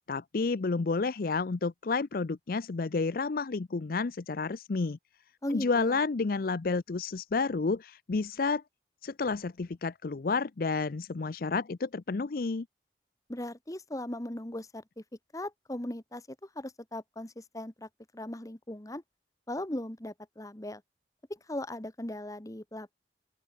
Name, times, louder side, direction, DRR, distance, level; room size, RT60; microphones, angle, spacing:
voice 1, 0.1-5.0 5.5-8.6 9.0-12.7, left 4 dB, 55° left, 0.5 m, -30 dB
voice 2, 5.4-6.0 13.3-15.0 15.3-19.0 19.5-20.8 21.3-23.0, left 1 dB, 20° left, 1.3 m, -38 dB
open air
head